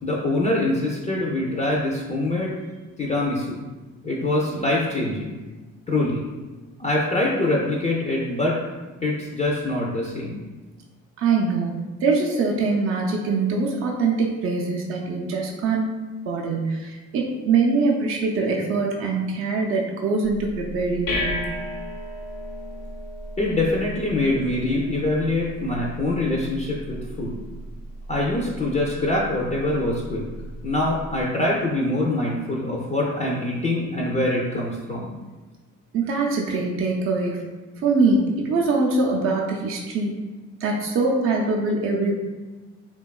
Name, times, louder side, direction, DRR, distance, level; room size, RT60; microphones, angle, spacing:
voice 1, 0.0-2.5 3.0-3.6 4.0-5.3 5.9-6.2 6.8-8.6 9.0-10.4 23.4-27.4 28.1-30.2 30.6-35.1, left 2 dB, 25° left, -4 dB, 0.4 m, -24 dB
voice 2, 11.2-15.9 16.3-21.4 35.9-37.5 37.8-40.1 40.6-42.1, right 3 dB, 45° right, -1 dB, 0.4 m, -23 dB
sound 1, 20.2-31.2, equal, 90° left, 0.7 m, -35 dB
2.9 x 2.2 x 2.3 m, 1.2 s
cardioid pair, 90°, 30 cm